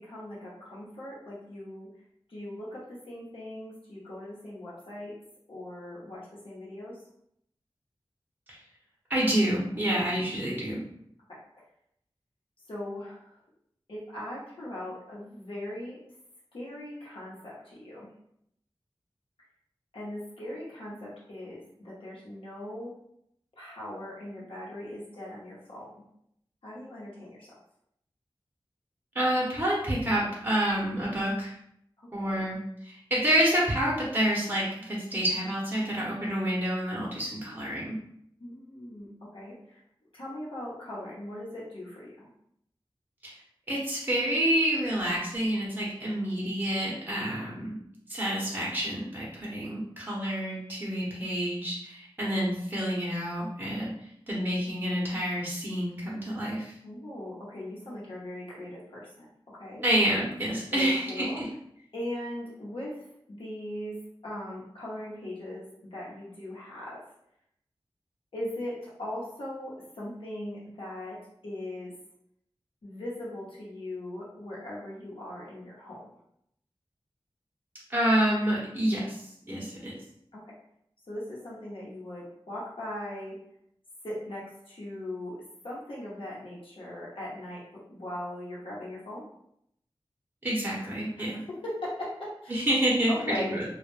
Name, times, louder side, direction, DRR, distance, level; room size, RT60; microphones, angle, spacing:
voice 1, 0.0-1.9 2.3-5.1 5.5-7.0 11.3-11.4 12.7-13.4 13.9-16.0 16.5-18.1 19.9-22.9 23.6-25.9 26.6-27.5 32.0-32.5 38.4-39.8 40.1-42.3 56.8-59.3 59.5-59.8 60.7-61.4 61.9-64.0 64.2-67.0 68.3-71.9 72.8-76.0 80.3-80.4 81.1-83.3 84.0-85.4 85.6-89.2 91.2-91.3 91.6-92.6 93.1-93.6, left 1 dB, 70° left, -7 dB, 0.9 m, -39 dB
voice 2, 9.1-10.8 29.1-31.5 32.1-32.6 32.8-38.0 43.2-43.3 43.7-47.8 48.1-53.9 54.3-56.7 59.8-61.5 77.9-79.9 90.4-91.4 92.5-93.6, right 1 dB, 20° right, -6 dB, 0.9 m, -28 dB
2.3 x 2.1 x 3.2 m, 0.72 s
wide cardioid pair, 50°, 9 cm